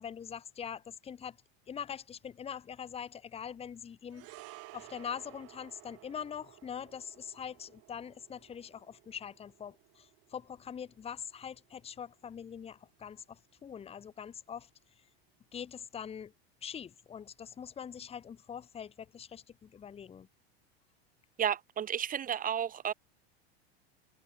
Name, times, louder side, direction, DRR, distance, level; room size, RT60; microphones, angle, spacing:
voice 1, 0.0-1.4 1.7-4.3 4.7-14.7 15.5-16.3 16.6-20.3, left 8 dB, 20° left, 1.2 m, -43 dB
sound 1, 4.1-12.6 12.8-13.0, right 21 dB, 50° right, 3.9 m, -56 dB
voice 2, 21.4-22.9, right 9 dB, 25° right, 2.0 m, -32 dB
supercardioid pair, 130°, 32 cm